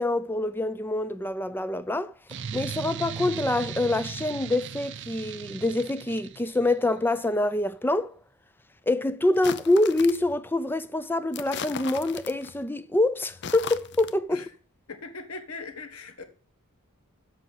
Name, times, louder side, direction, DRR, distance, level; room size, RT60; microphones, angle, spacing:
voice 1, 0.0-2.1 2.5-8.1 8.9-14.4, left 2 dB, 10° left, 0.4 m, -26 dB
sound 1, 2.3-6.8, right 7 dB, 55° right, 0.5 m, -37 dB
sound 2, 9.3-10.3 11.3-12.6 13.3-14.2, left 7 dB, 50° left, 0.6 m, -37 dB
voice 2, 14.9-16.2, left 3 dB, 75° left, 1.5 m, -39 dB
7.7 x 5.7 x 7.6 m
head